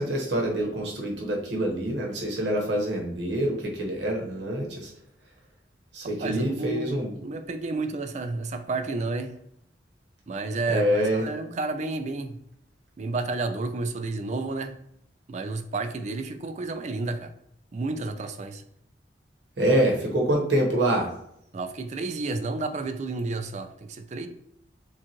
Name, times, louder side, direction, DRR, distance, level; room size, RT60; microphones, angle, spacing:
voice 1, 0.0-4.9 5.9-7.1 10.7-11.3 19.6-21.1, right 1 dB, 75° right, 0 dB, 1.2 m, -26 dB
voice 2, 6.0-9.4 10.3-12.4 13.0-14.8 15.3-17.3 17.7-18.6 21.5-24.3, right 3 dB, 40° right, 8 dB, 0.4 m, -31 dB
7.2 x 2.4 x 2.9 m, 0.74 s
head